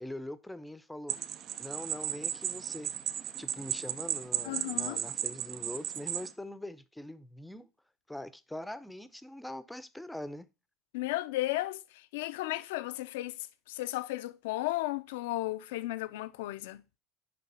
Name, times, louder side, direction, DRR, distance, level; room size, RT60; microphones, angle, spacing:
voice 1, 0.0-1.2 1.6-2.9 3.4-7.7 8.1-10.5, left 1 dB, 5° left, 0.6 m, -43 dB
sound 1, 1.1-6.3, right 10 dB, 50° right, 0.5 m, -35 dB
voice 2, 4.4-5.0 10.9-13.4 13.7-16.8, left 17 dB, 75° left, 0.5 m, -34 dB
5.9 x 5.3 x 4.7 m
hypercardioid pair, 90°, 0 cm